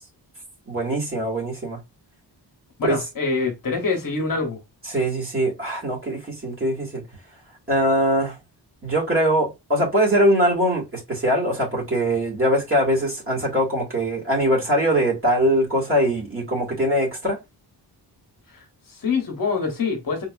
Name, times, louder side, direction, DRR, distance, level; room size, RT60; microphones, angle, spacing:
voice 1, 0.7-1.8 2.8-3.0 4.9-7.0 7.7-8.4 8.8-17.4, equal, 30° right, 2.0 m, -22 dB
voice 2, 2.8-4.6 18.5-20.3, left 4 dB, 50° left, 1.1 m, -25 dB
3.9 x 2.7 x 2.3 m
wide cardioid pair, 150°, 42 cm